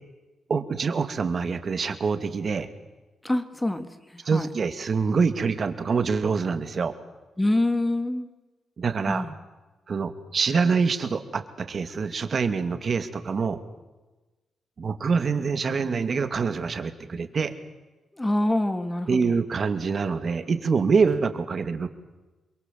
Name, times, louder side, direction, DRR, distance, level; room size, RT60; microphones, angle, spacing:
voice 1, 0.5-2.7 4.3-6.9 8.8-9.3 9.9-13.6 14.8-17.5 19.1-21.9, right 5 dB, 45° right, 9 dB, 2.4 m, -25 dB
voice 2, 3.2-3.9 4.3-4.5 7.4-8.3 9.1-9.3 18.2-19.4, left 1 dB, 10° left, 9 dB, 2.1 m, -25 dB
28.5 x 23.0 x 7.7 m, 1.2 s
cardioid pair, 110°, 0 cm